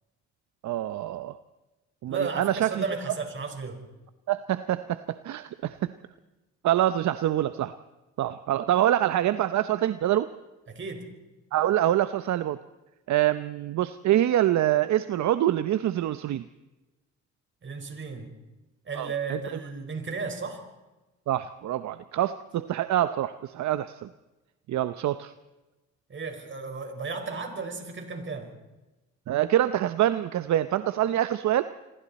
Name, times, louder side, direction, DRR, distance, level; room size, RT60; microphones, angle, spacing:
voice 1, 0.6-1.4 2.0-2.8 4.3-5.9 6.6-7.7 8.2-10.3 11.5-12.6 13.1-16.4 19.0-19.4 21.3-24.1 24.7-25.3 29.3-31.6, right 12 dB, 70° right, 12 dB, 0.8 m, -25 dB
voice 2, 2.1-3.8 10.7-11.1 17.6-18.3 18.8-20.6 26.1-28.5, right 4 dB, 40° right, 5 dB, 5.0 m, -34 dB
28.0 x 22.0 x 4.3 m, 1.1 s
cardioid pair, 90°, 30 cm